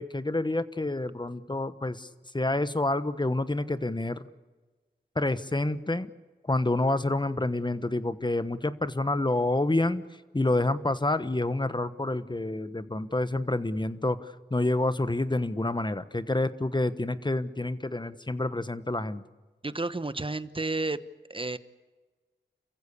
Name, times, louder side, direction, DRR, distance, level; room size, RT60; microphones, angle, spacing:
voice 1, 0.0-2.1 2.3-4.3 5.1-6.1 6.5-19.2, left 2 dB, 25° left, 13 dB, 1.2 m, -28 dB
voice 2, 19.6-21.0 21.3-21.6, right 2 dB, 30° right, 14 dB, 1.1 m, -31 dB
29.0 x 15.0 x 8.6 m, 1.3 s
wide cardioid pair, 55°, 18 cm